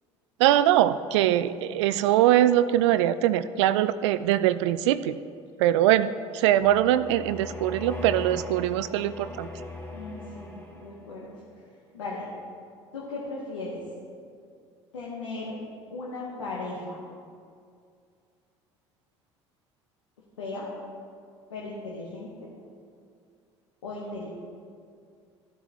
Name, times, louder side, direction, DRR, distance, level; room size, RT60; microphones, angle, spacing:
voice 1, 0.4-5.2 5.6-9.5, right 12 dB, 70° right, 14 dB, 0.4 m, -22 dB
sound 1, 6.6-11.2, left 2 dB, 15° left, 2.4 m, -40 dB
voice 2, 9.9-11.3 11.9-12.2 12.9-13.8 14.9-15.5 15.9-17.0 20.4-20.7 21.5-22.5 23.8-24.3, left 3 dB, 85° left, -5 dB, 1.4 m, -36 dB
14.5 x 8.4 x 3.1 m, 2.3 s
hypercardioid pair, 65°, 15 cm